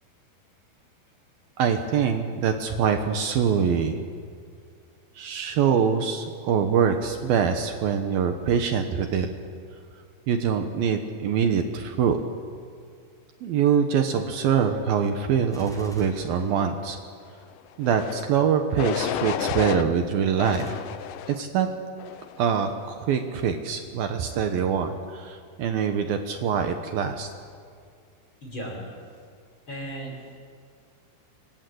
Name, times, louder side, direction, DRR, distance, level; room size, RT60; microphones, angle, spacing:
voice 1, 1.6-4.1 5.2-9.3 10.3-12.2 13.4-17.0 17.8-20.8 21.3-21.7 22.4-27.3, right 7 dB, 70° right, 6 dB, 2.9 m, -24 dB
Gunshot gunfire, 15.5-17.2 20.5-20.7, equal, ahead, 3.2 m, -46 dB
sound 1, 17.8-18.2 18.8-19.8 20.4-21.4 22.0-22.4, left 12 dB, 75° left, 2.2 m, -31 dB
voice 2, 28.4-28.8 29.7-30.4, right 1 dB, 30° left, -1 dB, 6.9 m, -36 dB
26.0 x 26.0 x 8.0 m, 2.2 s
omnidirectional pair, 4.6 m